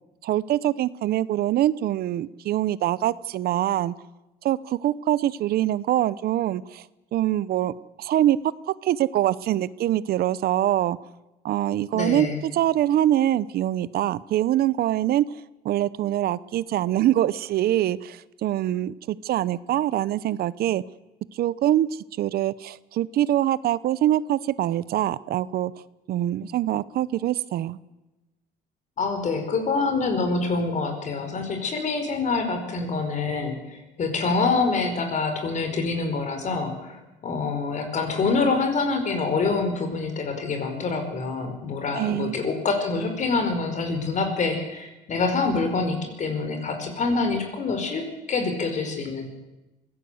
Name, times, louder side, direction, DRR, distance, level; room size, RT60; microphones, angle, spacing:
voice 1, 0.2-3.9 4.4-6.8 7.1-7.7 8.0-8.4 8.7-11.0 11.4-15.3 15.6-20.8 21.3-25.7 26.1-27.8 41.9-42.4, right 13 dB, 65° right, 18 dB, 0.8 m, -24 dB
voice 2, 11.9-12.4 29.0-37.0 37.2-49.2, left 4 dB, 45° left, 7 dB, 5.1 m, -26 dB
23.5 x 17.0 x 7.9 m, 1.1 s
cardioid pair, 110°, 17 cm